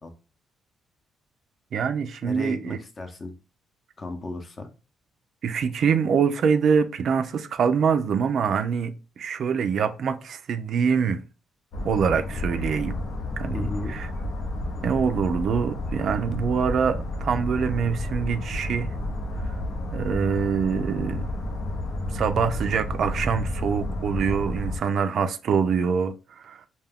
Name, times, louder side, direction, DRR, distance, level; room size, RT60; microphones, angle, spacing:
voice 1, 1.7-2.8 5.4-11.2 11.8-13.0 13.4-14.1 14.8-18.9 19.9-21.3 22.1-26.1 26.4-26.7, right 6 dB, 65° right, 0.3 m, -25 dB
voice 2, 2.2-3.3 4.0-4.7 13.5-13.9, left 2 dB, 35° left, 0.6 m, -35 dB
sound 1, 11.7-24.8, left 1 dB, 80° left, 0.6 m, -31 dB
2.3 x 2.2 x 3.4 m
cardioid pair, 90°, 0 cm